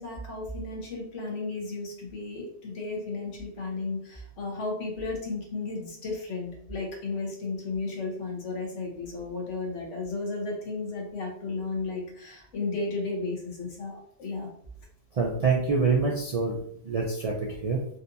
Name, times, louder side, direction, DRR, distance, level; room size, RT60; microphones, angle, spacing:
voice 1, 0.0-14.5, left 3 dB, 85° left, 0 dB, 1.3 m, -34 dB
voice 2, 15.1-16.6 16.8-17.3 17.6-17.8, right 4 dB, 60° right, -1 dB, 0.4 m, -25 dB
4.0 x 2.6 x 2.6 m, 0.66 s
omnidirectional pair, 1.2 m